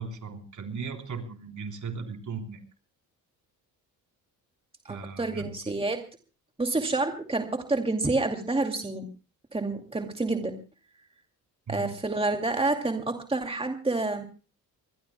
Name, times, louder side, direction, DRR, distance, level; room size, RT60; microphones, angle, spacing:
voice 1, 0.0-2.6 4.9-5.7 11.7-11.9, right 5 dB, 45° right, 3 dB, 3.8 m, -37 dB
voice 2, 4.9-6.0 6.6-9.1 9.5-10.6 11.7-14.2, right 2 dB, 15° right, 4 dB, 2.4 m, -28 dB
25.5 x 20.5 x 2.2 m, 0.34 s
supercardioid pair, 65°, 40 cm